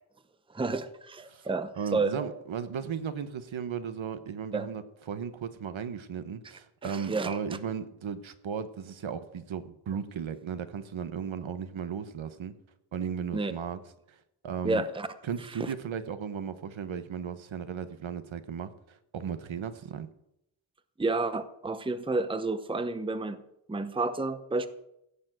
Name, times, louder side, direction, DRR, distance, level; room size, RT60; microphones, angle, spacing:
voice 1, 0.5-2.2 4.5-4.7 6.8-7.4 13.3-13.5 14.6-15.1 15.6-15.7 21.0-23.4 23.7-24.7, right 3 dB, 10° right, 0.7 m, -30 dB
voice 2, 1.7-12.5 12.9-13.8 14.1-14.2 14.4-14.8 15.2-20.1, right 7 dB, 75° right, 1.2 m, -36 dB
16.5 x 7.1 x 9.1 m
wide cardioid pair, 165°, 47 cm